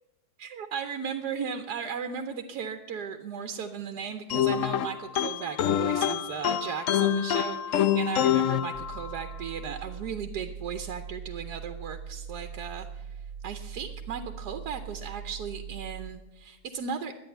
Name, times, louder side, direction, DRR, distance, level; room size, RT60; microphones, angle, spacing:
voice 1, 0.4-13.1 13.4-17.1, right 7 dB, 85° right, 7 dB, 1.3 m, -36 dB
sound 1, 4.3-9.4, left 10 dB, 65° left, 0.9 m, -26 dB
sound 2, 8.7-16.1, right 7 dB, 35° right, 1.0 m, -41 dB
12.0 x 9.3 x 7.9 m, 1.0 s
omnidirectional pair, 1.7 m